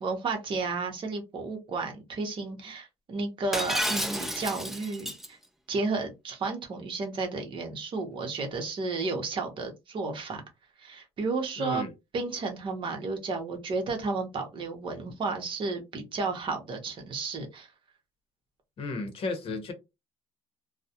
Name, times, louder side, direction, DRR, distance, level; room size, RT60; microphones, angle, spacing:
voice 1, 0.0-5.4 5.7-10.4 10.8-11.8 12.1-17.7, right 3 dB, 45° right, 0.8 m, -32 dB
Shatter, 3.5-5.3, equal, ahead, 0.4 m, -31 dB
voice 2, 11.6-11.9 18.8-19.7, left 3 dB, 50° left, 0.8 m, -33 dB
2.3 x 2.1 x 2.7 m
cardioid pair, 130°, 12 cm